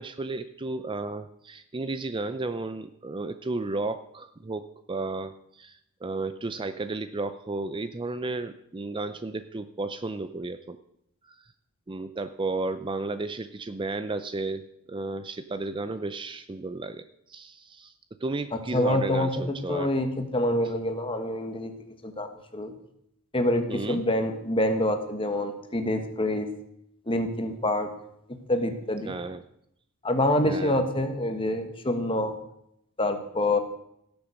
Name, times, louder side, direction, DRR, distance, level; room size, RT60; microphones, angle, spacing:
voice 1, 0.0-10.8 11.3-11.4 11.9-14.6 14.9-17.9 18.2-19.9 23.7-24.0 29.0-29.4 30.4-30.8, right 3 dB, 20° right, 11 dB, 0.5 m, -33 dB
voice 2, 18.5-21.7 22.0-22.7 23.3-26.5 27.1-27.9 28.5-29.1 30.0-32.3 33.0-33.6, left 1 dB, 25° left, 7 dB, 1.4 m, -26 dB
17.0 x 7.0 x 6.4 m, 0.77 s
head